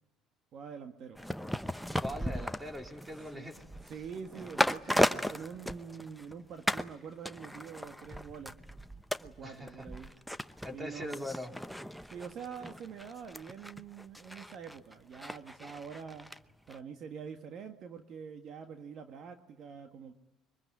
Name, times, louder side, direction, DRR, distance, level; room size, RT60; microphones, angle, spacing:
voice 1, 0.5-1.2 3.3-3.5 3.9-8.6 9.2-10.1 10.7-11.3 12.1-16.3 16.7-20.1, right 6 dB, 55° right, 6 dB, 1.7 m, -45 dB
sound 1, 1.2-6.3 6.7-6.9 7.3-16.4 16.7-16.8, equal, ahead, 0.8 m, -36 dB
voice 2, 2.0-3.6 4.9-5.2 9.4-9.9 10.6-11.5, left 1 dB, 15° right, 4 dB, 4.1 m, -41 dB
23.0 x 20.5 x 9.6 m, 0.98 s
supercardioid pair, 95°, 0 cm